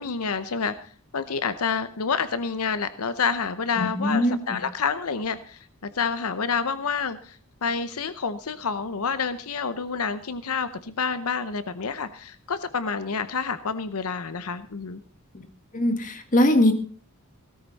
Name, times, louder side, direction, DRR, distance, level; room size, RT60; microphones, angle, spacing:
voice 1, 0.0-15.0, left 5 dB, 80° left, 13 dB, 0.8 m, -28 dB
voice 2, 3.8-4.6 15.7-16.7, left 1 dB, 35° left, 7 dB, 1.8 m, -21 dB
17.0 x 13.5 x 4.1 m, 0.40 s
head